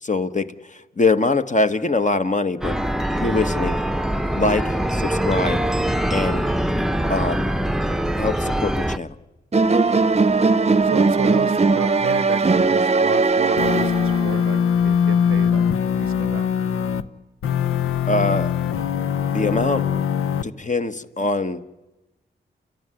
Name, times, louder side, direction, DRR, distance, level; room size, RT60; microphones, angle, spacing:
voice 1, 0.0-2.8 3.2-3.8 4.3-5.6 6.1-6.5 7.1-7.5 8.2-9.2 18.1-18.5 19.3-19.9 20.4-21.6, left 3 dB, 35° left, 10 dB, 1.4 m, -23 dB
sound 1, 2.6-9.0, right 1 dB, ahead, 0.9 m, -23 dB
sound 2, 9.5-14.4, right 3 dB, 30° right, 0.9 m, -19 dB
voice 2, 10.8-15.6 16.0-16.5, right 9 dB, 85° right, 17 dB, 0.8 m, -31 dB
sound 3, 13.6-17.0 17.4-20.4, left 8 dB, 80° left, 0.8 m, -21 dB
29.5 x 13.5 x 9.9 m, 1.1 s
supercardioid pair, 40°, 21 cm